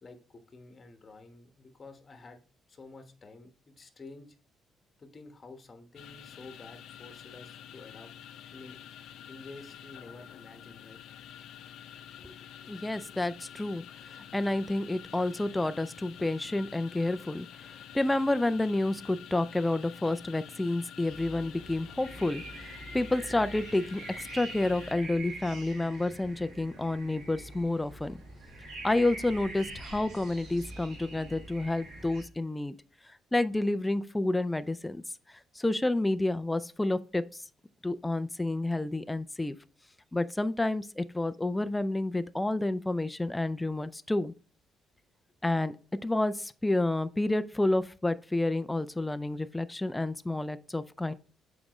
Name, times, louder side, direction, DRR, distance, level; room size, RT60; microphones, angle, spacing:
voice 1, 0.0-2.4 2.7-4.4 5.0-8.1 8.5-8.8 9.3-11.0, left 3 dB, 30° left, 1.2 m, -50 dB
sound 1, 6.0-25.0, left 10 dB, 75° left, 0.5 m, -48 dB
voice 2, 12.7-24.0 24.3-28.2 28.8-32.8 33.3-35.0 35.6-37.2 37.8-39.6 40.1-44.3 45.4-45.7 46.0-51.1, left 2 dB, 10° left, 0.4 m, -29 dB
sound 2, 21.0-32.2, right 2 dB, 65° right, 3.0 m, -45 dB
7.3 x 4.9 x 3.1 m
cardioid pair, 115°, 0 cm